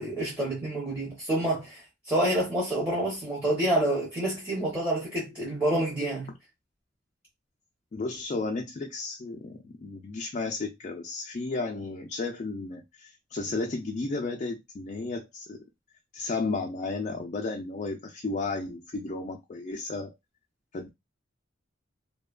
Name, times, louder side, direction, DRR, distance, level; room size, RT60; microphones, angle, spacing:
voice 1, 0.0-6.3, right 1 dB, 10° right, 0.8 m, -28 dB
voice 2, 7.9-15.6 16.1-20.1 20.7-20.9, left 3 dB, 40° left, 0.3 m, -33 dB
2.7 x 2.2 x 2.3 m
head